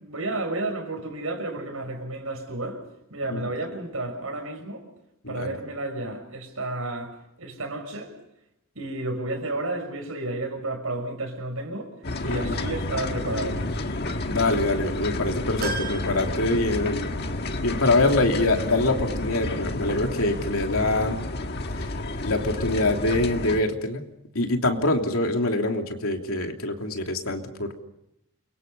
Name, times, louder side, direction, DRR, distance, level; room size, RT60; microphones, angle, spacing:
voice 1, 0.0-2.8 3.1-4.8 5.3-8.2 8.7-12.0 12.2-13.7, right 2 dB, 70° right, 6.3 m, -31 dB
voice 2, 5.2-5.6 12.2-12.5 14.2-17.1 17.6-21.2 21.7-21.9 22.2-24.1 24.3-27.8, left 2 dB, 75° left, 3.1 m, -24 dB
sound 1, 12.0-23.6, left 2 dB, 45° left, 1.6 m, -30 dB
sound 2, 15.6-17.2 17.7-17.8 19.0-19.1, right 3 dB, 45° right, 4.8 m, -36 dB
29.0 x 23.5 x 5.6 m
head